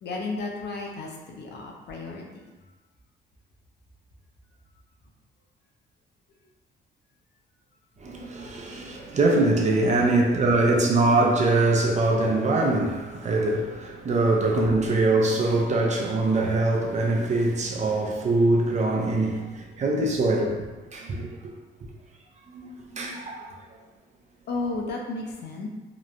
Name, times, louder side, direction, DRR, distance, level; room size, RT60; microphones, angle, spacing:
voice 1, 0.0-2.5 24.5-25.7, left 3 dB, 60° left, 0.5 m, -33 dB
voice 2, 8.0-20.7 20.9-21.5 22.5-23.5, right 2 dB, 35° right, 0.4 m, -23 dB
2.9 x 2.0 x 2.4 m
cardioid pair, 90°, 20 cm